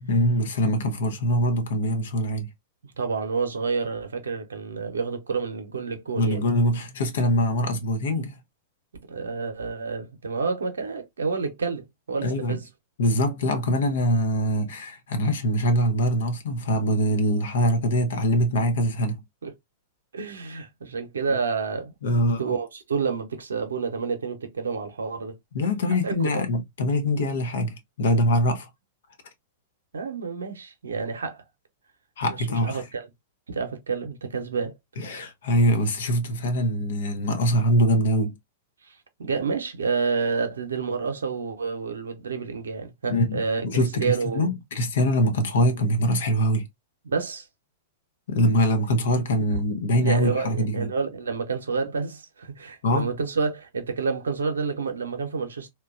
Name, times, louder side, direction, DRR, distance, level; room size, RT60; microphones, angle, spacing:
voice 1, 0.0-2.5 6.1-8.4 12.2-12.6 13.0-19.2 22.0-22.4 25.5-28.7 32.2-32.8 35.0-38.3 43.1-46.7 48.3-50.9 52.8-53.1, equal, 70° left, 0.7 m, -23 dB
voice 2, 3.0-6.4 9.1-12.7 19.4-19.5 20.1-25.3 26.0-26.4 29.9-31.4 32.5-33.1 33.5-34.7 38.9-39.0 39.2-44.5 47.0-47.5 49.7-55.7, right 5 dB, 85° right, 0.6 m, -29 dB
2.9 x 2.2 x 2.3 m
hypercardioid pair, 110°, 0 cm